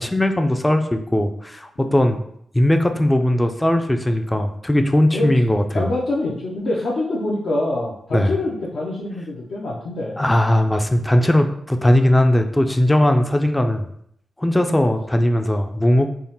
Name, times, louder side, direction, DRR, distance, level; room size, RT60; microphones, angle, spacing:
voice 1, 0.0-2.2 2.5-5.9 8.1-8.3 10.2-13.8 14.4-16.1, left 1 dB, 10° left, 6 dB, 0.3 m, -18 dB
voice 2, 5.7-10.2 13.0-13.1, left 2 dB, 75° left, -5 dB, 0.5 m, -25 dB
3.4 x 2.0 x 2.7 m, 0.71 s
cardioid pair, 60°, 0 cm